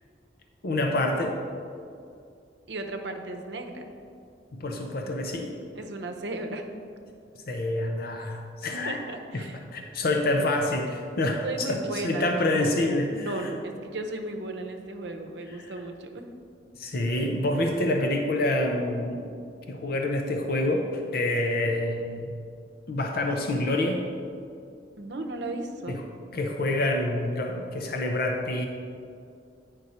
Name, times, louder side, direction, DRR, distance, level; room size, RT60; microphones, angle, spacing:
voice 1, 0.6-1.4 4.5-5.5 7.5-9.0 9.3-13.5 15.6-15.7 16.8-19.2 19.7-22.3 22.9-24.0 25.9-26.0 26.3-28.7, left 1 dB, 55° left, 3 dB, 0.6 m, -27 dB
voice 2, 2.7-3.9 5.7-6.7 8.9-9.6 11.4-12.7 13.1-16.2 25.0-26.0, right 2 dB, 70° right, 4 dB, 0.7 m, -35 dB
9.4 x 5.3 x 4.2 m, 2.4 s
head